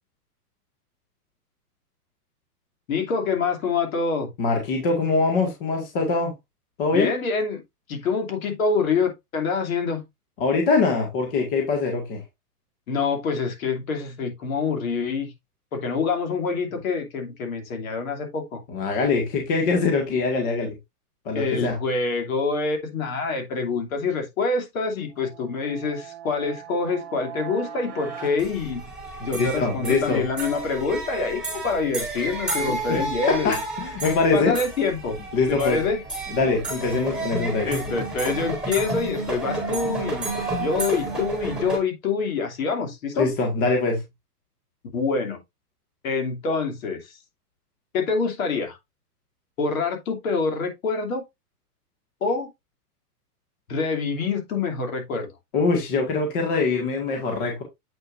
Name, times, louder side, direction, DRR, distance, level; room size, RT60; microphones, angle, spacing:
voice 1, 2.9-4.3 6.9-7.6 7.9-10.0 12.9-15.3 15.7-18.6 21.3-28.8 29.2-33.6 34.3-35.2 35.5-36.0 37.6-40.3 40.6-43.3 44.9-45.4 46.0-47.2 47.9-48.8 49.6-51.2 52.2-52.5 53.7-55.3, left 4 dB, 60° left, 2.9 m, -26 dB
voice 2, 4.4-6.3 6.8-7.1 10.4-12.2 18.7-20.7 21.3-21.8 29.3-30.2 32.6-33.0 33.3-34.5 35.3-35.8 36.3-37.7 43.2-44.0 55.5-57.6, left 4 dB, 35° left, 2.0 m, -23 dB
sound 1, 25.1-29.5, right 8 dB, 20° right, 1.9 m, -40 dB
sound 2, 28.4-41.8, right 2 dB, ahead, 4.0 m, -31 dB
8.2 x 6.5 x 2.6 m
supercardioid pair, 170°, 47 cm